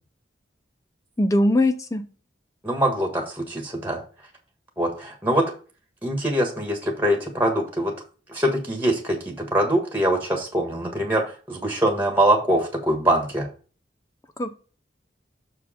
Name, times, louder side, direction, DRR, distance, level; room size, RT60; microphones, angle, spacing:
voice 1, 1.2-2.0 14.4-14.5, left 1 dB, 15° left, 9 dB, 0.5 m, -20 dB
voice 2, 2.6-4.0 4.8-5.4 6.0-7.9 8.3-13.5, right 1 dB, 10° right, 2 dB, 1.5 m, -23 dB
6.7 x 4.7 x 5.0 m, 0.37 s
head